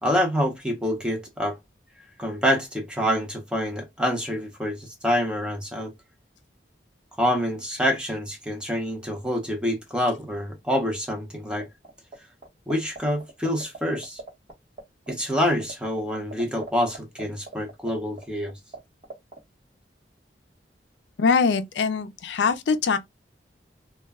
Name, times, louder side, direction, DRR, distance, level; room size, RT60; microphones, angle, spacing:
voice 1, 0.0-1.6 2.2-5.9 7.2-11.7 12.7-14.2 15.1-18.5, equal, 5° right, 0.6 m, -26 dB
sound 1, 11.6-12.1 12.4-14.5 14.8-14.9 15.1-18.8 19.0-19.4, right 4 dB, 30° right, 0.9 m, -38 dB
voice 2, 21.2-23.0, left 5 dB, 75° left, 0.4 m, -22 dB
2.2 x 2.1 x 3.4 m
head